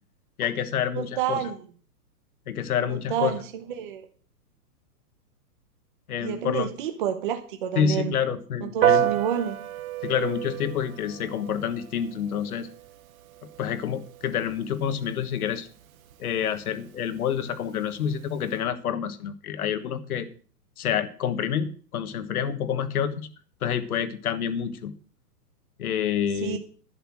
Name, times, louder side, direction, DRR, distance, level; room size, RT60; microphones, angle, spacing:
voice 1, 0.4-1.4 2.5-3.4 6.1-6.7 7.7-9.1 10.0-12.7 13.6-15.7 16.2-20.3 20.8-23.3 23.6-24.9 25.8-26.6, left 8 dB, 60° left, 11 dB, 1.5 m, -28 dB
voice 2, 0.9-1.5 2.9-4.0 6.2-8.1 8.6-9.6 26.3-26.6, right 9 dB, 30° right, 6 dB, 0.8 m, -29 dB
Piano, 8.8-18.6, right 11 dB, 55° right, 0.9 m, -32 dB
11.5 x 8.1 x 6.2 m, 0.43 s
hypercardioid pair, 170°, 49 cm